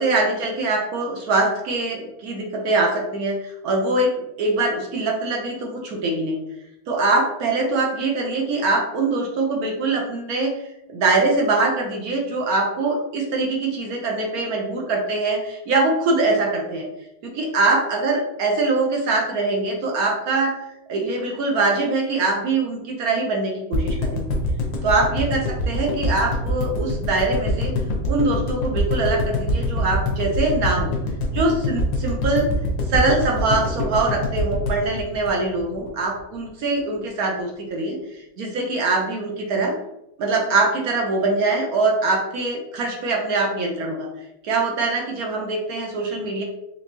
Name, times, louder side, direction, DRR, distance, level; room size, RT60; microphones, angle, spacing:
voice 1, 0.0-4.1 4.4-6.4 6.9-10.5 10.9-16.9 17.2-20.6 20.9-24.3 24.8-27.7 28.1-30.9 31.3-32.5 32.9-38.0 38.4-39.7 40.2-44.1 44.4-46.4, right 3 dB, 65° right, 0 dB, 0.9 m, -23 dB
sound 1, 23.7-35.9 36.2-36.3 36.5-36.6, left 1 dB, 75° left, 1.4 m, -24 dB
4.4 x 2.7 x 2.9 m, 0.86 s
omnidirectional pair, 2.1 m